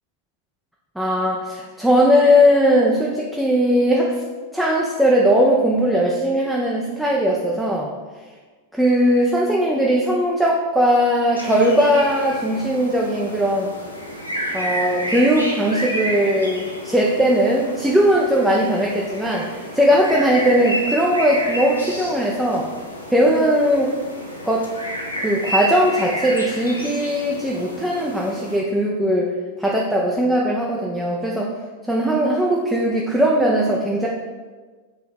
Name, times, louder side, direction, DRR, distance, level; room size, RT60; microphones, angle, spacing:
voice 1, 1.0-4.2 4.5-7.9 8.7-13.7 14.5-22.7 23.1-23.9 24.5-24.7 25.2-29.3 29.6-31.5 31.9-34.1, equal, ahead, -3 dB, 0.5 m, -19 dB
sound 1, 11.3-28.6, equal, 85° left, 0.6 m, -30 dB
3.9 x 3.0 x 4.3 m, 1.4 s
figure-of-eight pair, 90°, 0 cm